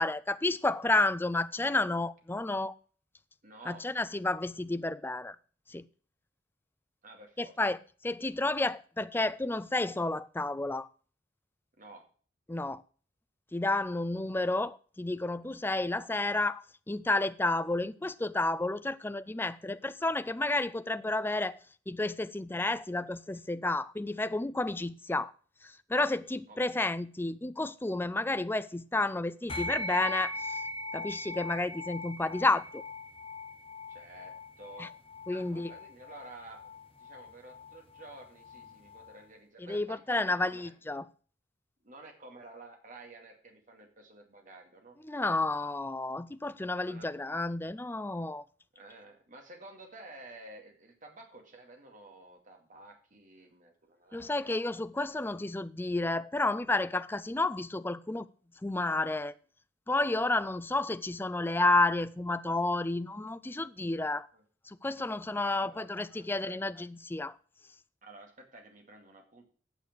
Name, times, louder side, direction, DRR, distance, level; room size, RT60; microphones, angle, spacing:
voice 1, 0.0-2.7 3.7-5.4 5.7-5.8 7.4-7.8 8.0-10.9 12.5-12.8 13.5-21.6 21.9-25.3 25.9-30.6 30.9-32.8 34.8-34.9 35.3-35.7 39.6-41.1 45.0-48.4 54.1-58.3 58.6-59.3 59.9-64.3 64.8-67.3, left 2 dB, 10° left, 0.4 m, -31 dB
voice 2, 3.4-3.8 7.0-7.8 11.8-12.0 26.5-26.9 33.9-34.9 35.3-40.7 41.8-45.0 45.3-45.4 46.8-47.1 48.8-54.5 64.3-64.4 65.4-66.6 68.0-69.5, right 2 dB, 45° right, 2.3 m, -51 dB
sound 1, 29.5-39.2, left 2 dB, 30° left, 1.1 m, -40 dB
9.1 x 6.7 x 6.7 m
head